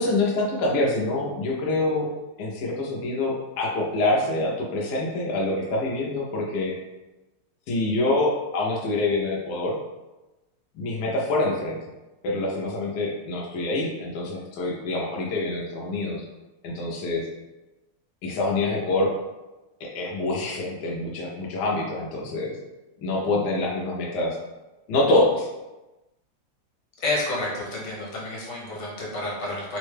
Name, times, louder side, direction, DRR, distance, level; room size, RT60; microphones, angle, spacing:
voice 1, 0.0-2.1 2.4-6.7 7.7-9.8 10.8-11.8 12.2-16.2 16.6-17.3 18.2-19.1 19.8-22.5 23.0-24.4 24.9-25.5, left 2 dB, 80° left, -3 dB, 0.9 m, -25 dB
voice 2, 27.0-29.8, left 2 dB, 60° left, -4 dB, 1.4 m, -30 dB
3.7 x 2.1 x 3.2 m, 1.1 s
omnidirectional pair, 2.4 m